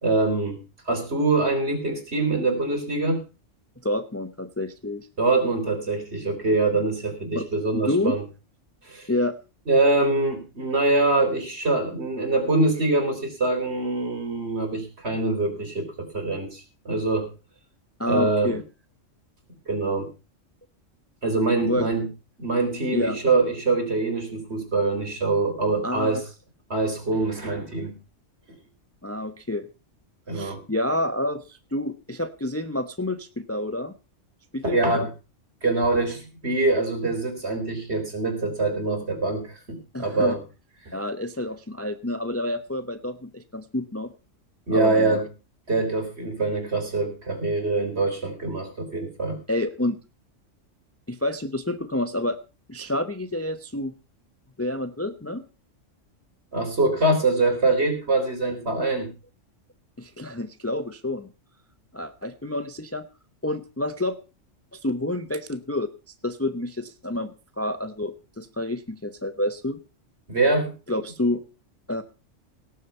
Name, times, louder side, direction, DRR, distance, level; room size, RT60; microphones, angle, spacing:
voice 1, 0.0-3.2 5.2-8.2 8.8-9.1 9.7-17.3 18.1-18.6 19.7-20.1 21.2-22.0 22.4-26.2 26.7-27.9 30.3-30.6 34.6-35.1 35.6-40.4 40.9-41.0 44.7-45.2 45.7-49.4 56.5-59.1 70.3-70.7, right 2 dB, 55° right, 4 dB, 4.2 m, -24 dB
voice 2, 3.8-5.1 7.3-7.5 7.7-8.2 9.1-9.4 18.0-18.6 21.6-21.9 22.9-23.2 25.8-26.2 29.0-29.7 30.3-33.9 34.5-35.1 39.9-40.4 40.9-44.1 44.7-45.2 49.5-50.0 51.1-52.4 52.7-53.9 54.6-55.4 60.0-61.3 61.9-63.0 63.4-64.2 64.7-65.9 66.2-67.3 67.6-69.8 70.9-71.4 71.9-72.0, left 1 dB, 15° left, 10 dB, 0.7 m, -28 dB
18.0 x 7.5 x 5.7 m, 0.32 s
omnidirectional pair, 1.3 m